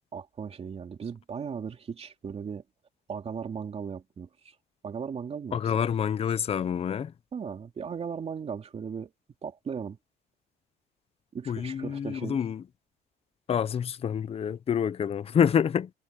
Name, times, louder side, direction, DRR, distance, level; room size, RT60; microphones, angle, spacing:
voice 1, 0.1-2.6 3.1-4.5 4.8-5.6 7.3-9.1 9.4-10.0 11.3-12.4, right 6 dB, 35° right, 2.9 m, -37 dB
voice 2, 5.5-7.1 11.5-12.6 13.5-15.9, left 8 dB, 35° left, 0.7 m, -27 dB
cardioid pair, 110°, 17 cm